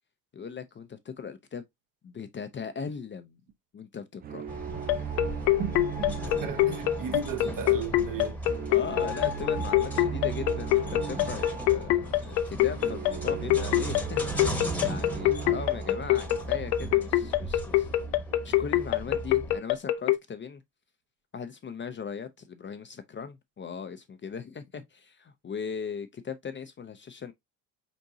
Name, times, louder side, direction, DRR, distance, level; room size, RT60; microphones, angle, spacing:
voice 1, 0.3-1.6 2.0-3.4 3.7-4.4 8.7-14.5 14.8-17.9 18.4-20.6 21.3-27.3, left 6 dB, 25° left, 0.6 m, -39 dB
sound 1, 4.2-17.3, right 10 dB, 20° right, 0.3 m, -39 dB
sound 2, 4.5-19.6, equal, 5° left, 1.1 m, -37 dB
sound 3, 4.9-20.2, left 15 dB, 70° left, 0.7 m, -24 dB
voice 2, 5.6-8.4, right 8 dB, 40° right, 0.9 m, -35 dB
4.4 x 4.1 x 2.6 m
hypercardioid pair, 60°, 49 cm